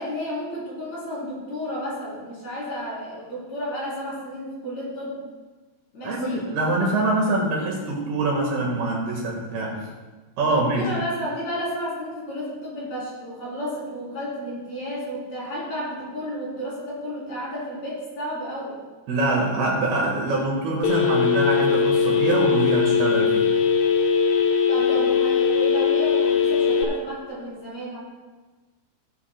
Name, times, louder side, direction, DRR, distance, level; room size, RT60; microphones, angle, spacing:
voice 1, 0.0-5.2 5.9-6.5 10.4-18.8 24.7-28.0, equal, 40° left, -7 dB, 4.4 m, -32 dB
voice 2, 6.0-9.9 10.4-10.9 19.1-23.5, right 2 dB, 65° right, -2 dB, 3.2 m, -24 dB
Telephone, 20.8-26.8, left 6 dB, 85° left, 1.9 m, -20 dB
18.0 x 9.7 x 2.2 m, 1.3 s
omnidirectional pair, 5.3 m